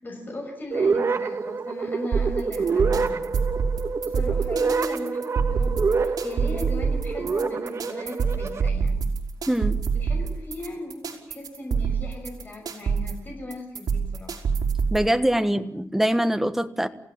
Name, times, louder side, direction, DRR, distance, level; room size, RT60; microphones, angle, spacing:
voice 1, 0.0-3.3 4.0-9.1 9.9-14.4 15.4-15.6, left 1 dB, 30° left, 2 dB, 6.4 m, -37 dB
sound 1, 0.7-8.7, right 4 dB, 45° right, 1.5 m, -27 dB
sound 2, 2.1-15.1, right 5 dB, 80° right, 4.5 m, -26 dB
voice 2, 9.5-9.8 14.9-16.9, right 1 dB, 5° right, 9 dB, 1.4 m, -23 dB
29.5 x 16.5 x 7.6 m, 0.69 s
wide cardioid pair, 145°, 6 cm